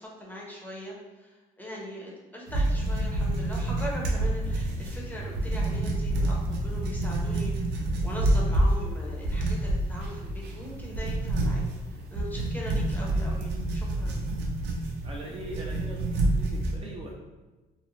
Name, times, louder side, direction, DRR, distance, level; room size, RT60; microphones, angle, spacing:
voice 1, 0.0-14.1, left 1 dB, 10° left, -4 dB, 0.6 m, -40 dB
sound 1, 2.5-16.8, right 1 dB, 90° right, 0.5 m, -28 dB
voice 2, 15.0-17.2, right 2 dB, 35° right, -2 dB, 0.4 m, -40 dB
2.4 x 2.1 x 3.0 m, 1.2 s
cardioid pair, 110°, 17 cm